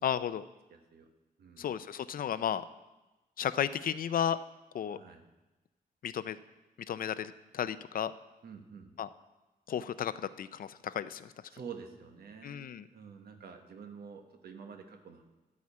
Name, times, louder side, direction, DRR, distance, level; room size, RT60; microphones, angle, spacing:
voice 1, 0.0-0.4 1.6-2.6 3.4-4.4 4.7-5.0 6.0-6.4 6.9-8.1 9.0-9.1 9.7-11.3 12.4-12.8, left 9 dB, 65° left, 14 dB, 0.5 m, -33 dB
voice 2, 0.7-1.1 1.4-1.7 4.9-5.2 8.4-8.9 11.5-15.2, right 6 dB, 85° right, 5 dB, 1.3 m, -48 dB
13.5 x 4.9 x 8.4 m, 1.1 s
wide cardioid pair, 165°, 16 cm